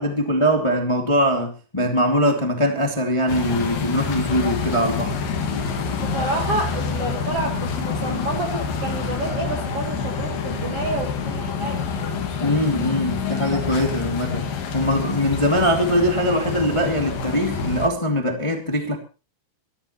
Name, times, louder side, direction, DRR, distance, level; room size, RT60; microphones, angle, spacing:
voice 1, 0.0-5.2 12.4-19.0, equal, 25° left, 0.6 m, -22 dB
sound 1, 3.3-17.9, left 6 dB, 55° left, 3.3 m, -27 dB
voice 2, 5.9-11.8, right 3 dB, 55° right, 1.7 m, -29 dB
23.5 x 13.5 x 3.2 m
omnidirectional pair, 5.6 m